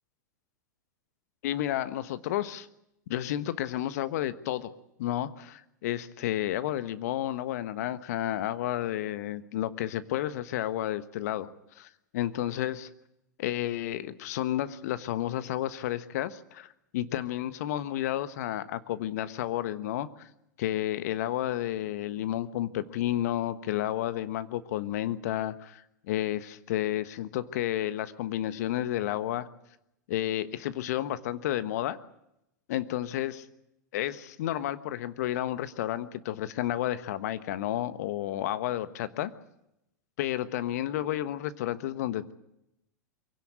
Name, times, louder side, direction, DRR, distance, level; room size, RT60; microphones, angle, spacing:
voice 1, 1.4-2.7 3.1-4.7 5.0-11.9 12.1-12.9 13.4-20.3 20.6-29.5 30.1-32.0 32.7-33.4 33.9-39.3 40.2-42.3, left 13 dB, 55° left, 13 dB, 1.3 m, -31 dB
23.5 x 17.0 x 9.5 m, 0.84 s
figure-of-eight pair, 95°, 10 cm